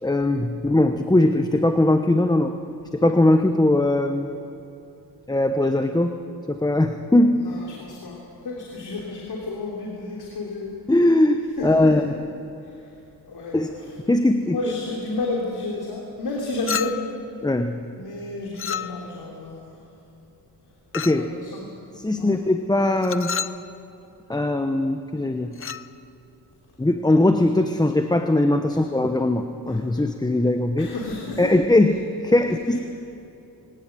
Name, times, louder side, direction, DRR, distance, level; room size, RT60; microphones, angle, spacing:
voice 1, 0.0-2.5 2.9-4.3 5.3-6.2 6.5-7.4 10.9-12.1 13.5-13.7 14.1-14.6 17.4-17.8 20.9-21.3 21.9-23.3 24.3-25.6 26.8-30.9 31.4-31.9 32.2-32.8, left 1 dB, 10° left, 7 dB, 0.9 m, -20 dB
voice 2, 7.4-10.8 11.6-12.0 13.2-13.7 14.5-17.0 18.0-19.8 21.2-21.7 22.2-22.3 30.8-31.5, left 2 dB, 75° left, -2 dB, 3.3 m, -31 dB
Chink clink, 16.7-17.2 18.6-19.2 20.9-21.3 23.0-23.6 25.5-25.9, left 7 dB, 35° left, 0.5 m, -30 dB
21.5 x 17.0 x 9.1 m, 2.8 s
cardioid pair, 105°, 39 cm